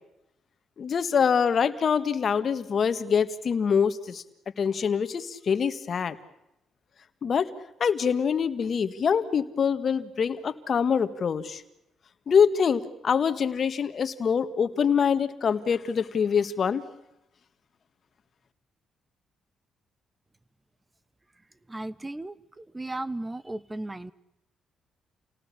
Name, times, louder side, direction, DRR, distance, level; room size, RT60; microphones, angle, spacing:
voice 1, 0.8-4.2 4.6-6.2 7.2-7.5 7.8-11.6 12.3-16.8, left 6 dB, 50° left, 11 dB, 1.7 m, -25 dB
voice 2, 21.7-24.1, right 2 dB, 15° right, 19 dB, 1.1 m, -35 dB
28.5 x 18.5 x 8.5 m, 0.87 s
cardioid pair, 90°, 0 cm